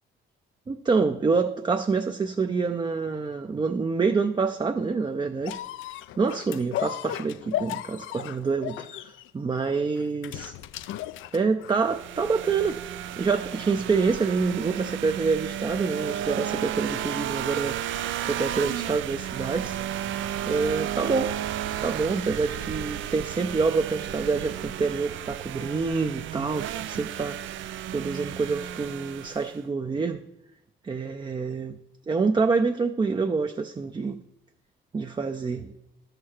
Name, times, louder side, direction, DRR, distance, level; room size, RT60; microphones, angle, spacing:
voice 1, 0.7-5.6 6.2-10.5 11.3-12.8 13.2-17.8 18.2-19.8 20.5-21.4 21.8-27.4 27.9-30.2 30.8-31.8 32.1-34.2 34.9-35.7, right 4 dB, 25° right, 0.5 m, -27 dB
sound 1, 5.4-11.9 12.7-12.8, left 13 dB, 80° left, 0.4 m, -35 dB
sound 2, 11.8-29.6, right 11 dB, 75° right, 0.5 m, -33 dB
11.5 x 6.6 x 4.3 m
cardioid pair, 90°, 20 cm